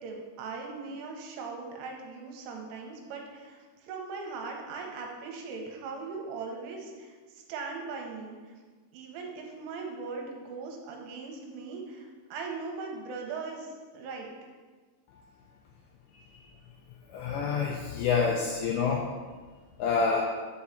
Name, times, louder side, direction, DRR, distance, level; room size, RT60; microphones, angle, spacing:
voice 1, 0.0-8.4 8.9-14.3, right 4 dB, 80° right, 1 dB, 3.3 m, -39 dB
voice 2, 17.1-19.1 19.8-20.2, left 5 dB, 85° left, 0 dB, 2.5 m, -27 dB
7.2 x 4.7 x 6.9 m, 1.4 s
omnidirectional pair, 5.8 m